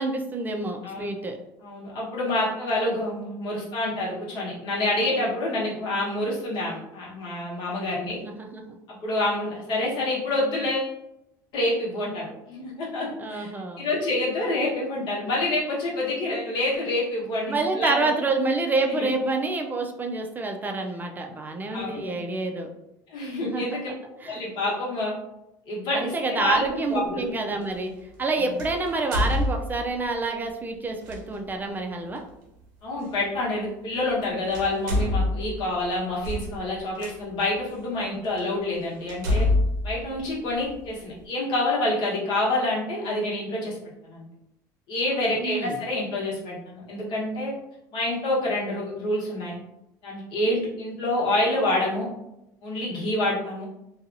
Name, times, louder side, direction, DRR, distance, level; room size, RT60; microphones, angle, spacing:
voice 1, 0.0-1.4 8.2-8.8 13.2-13.8 17.5-22.7 23.4-23.8 24.2-24.4 25.9-27.9 28.2-32.2 45.3-45.8, right 3 dB, 20° right, 3 dB, 0.4 m, -28 dB
voice 2, 1.6-8.2 8.9-10.9 11.5-13.5 13.8-18.1 18.9-19.1 21.7-22.2 23.1-23.9 24.3-25.2 25.7-26.6 26.9-27.3 32.8-39.5 39.8-43.8 44.0-44.2 44.9-47.5 47.9-49.6 50.0-52.1 52.6-53.7, left 1 dB, 60° left, -4 dB, 1.1 m, -27 dB
sound 1, 26.5-26.7 28.6-30.1 31.0-31.2 33.1-33.2 34.1-34.2 34.5-37.1 37.8-37.9 38.4-38.5 39.1-40.9, left 1 dB, 85° right, 0.7 m, -26 dB
2.7 x 2.3 x 2.6 m, 0.86 s
supercardioid pair, 95°, 9 cm